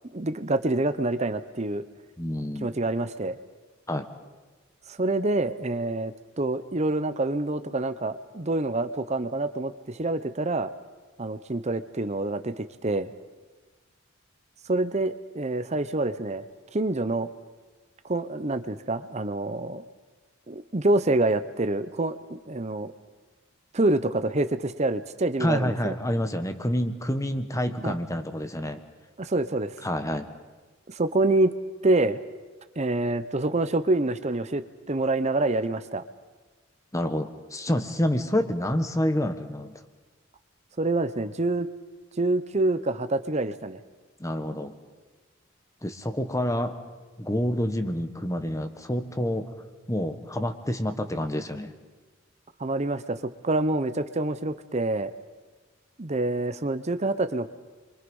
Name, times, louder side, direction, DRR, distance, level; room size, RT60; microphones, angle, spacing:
voice 1, 0.1-1.8 2.6-3.4 4.9-10.7 11.2-13.1 14.7-16.4 16.7-17.3 18.0-19.8 20.5-22.9 23.7-25.9 27.8-28.0 29.2-29.7 30.9-31.5 31.8-32.2 32.8-36.0 40.8-41.7 42.2-43.8 52.6-55.1 56.0-57.5, right 2 dB, 35° right, 11 dB, 0.8 m, -26 dB
voice 2, 2.2-2.7 3.9-4.1 25.4-28.8 29.8-30.3 36.9-39.7 44.2-44.7 45.8-46.7 47.2-49.5 49.9-51.7, left 1 dB, 15° left, 8 dB, 1.4 m, -28 dB
30.0 x 24.5 x 5.5 m, 1.3 s
head